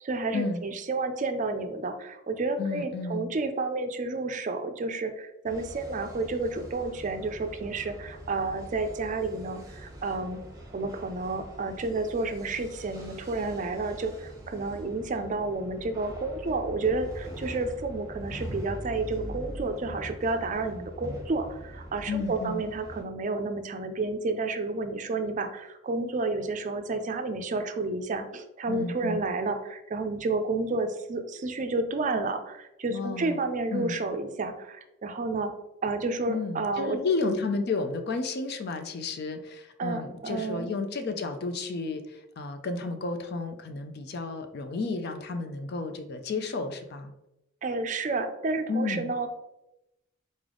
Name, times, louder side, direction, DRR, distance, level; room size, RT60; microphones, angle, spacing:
voice 1, 0.0-10.4 10.7-35.5 35.8-37.0 39.8-40.7 47.6-49.3, right 3 dB, 40° right, 7 dB, 0.4 m, -31 dB
voice 2, 2.6-3.3 22.1-22.6 28.7-29.2 32.9-33.4 33.7-34.0 36.3-47.1 48.7-49.1, left 3 dB, 50° left, 7 dB, 0.4 m, -32 dB
sound 1, 5.4-23.0, right 1 dB, 15° right, 0.8 m, -43 dB
3.9 x 3.4 x 3.7 m, 0.90 s
head